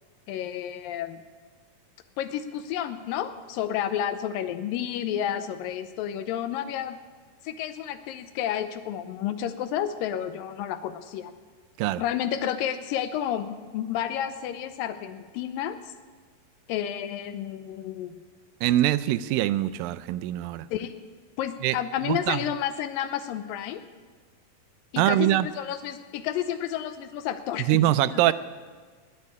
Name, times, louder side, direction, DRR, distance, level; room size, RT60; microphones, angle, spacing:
voice 1, 0.3-1.2 2.2-7.0 7.4-11.3 12.0-15.8 16.7-18.2 20.7-21.0 21.4-23.8 24.9-27.7 28.0-28.3, left 10 dB, 90° left, 11 dB, 2.5 m, -31 dB
voice 2, 18.6-20.7 21.6-21.8 22.1-22.4 25.0-25.5 27.7-28.3, right 14 dB, 90° right, 15 dB, 2.3 m, -23 dB
19.0 x 6.6 x 9.6 m, 1.5 s
omnidirectional pair, 4.0 m